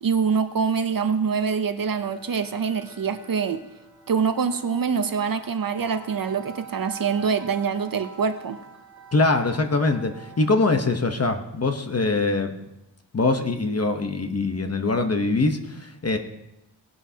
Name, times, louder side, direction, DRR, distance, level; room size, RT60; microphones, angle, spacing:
voice 1, 0.0-3.6 4.1-8.6, right 6 dB, 50° right, 10 dB, 0.7 m, -25 dB
sound 1, 1.5-10.9, right 6 dB, 5° right, 2.2 m, -45 dB
voice 2, 9.1-12.5 13.1-16.2, left 3 dB, 35° left, 6 dB, 0.9 m, -23 dB
18.5 x 11.0 x 2.8 m, 0.90 s
wide cardioid pair, 170°, 45 cm